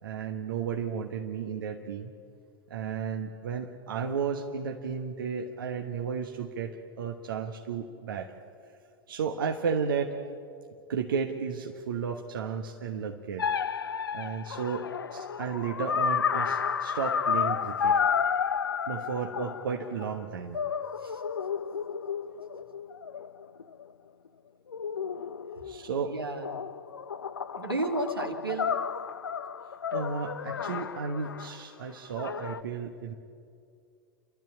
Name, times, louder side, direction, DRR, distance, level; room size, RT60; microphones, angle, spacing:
voice 1, 0.0-2.1 2.7-8.3 9.1-10.1 10.9-13.5 14.1-18.0 18.9-20.6 25.6-26.2 27.5-27.6 29.9-33.1, right 6 dB, 65° right, 3 dB, 1.4 m, -33 dB
sound 1, 13.4-20.2 20.5-23.8 24.7-26.0 26.4-31.6 32.2-32.6, left 7 dB, 80° left, 0.7 m, -31 dB
voice 2, 26.0-26.5 27.6-28.8, right 2 dB, 90° right, 2 dB, 2.2 m, -32 dB
29.5 x 12.5 x 8.7 m, 2.4 s
figure-of-eight pair, 95°, 12 cm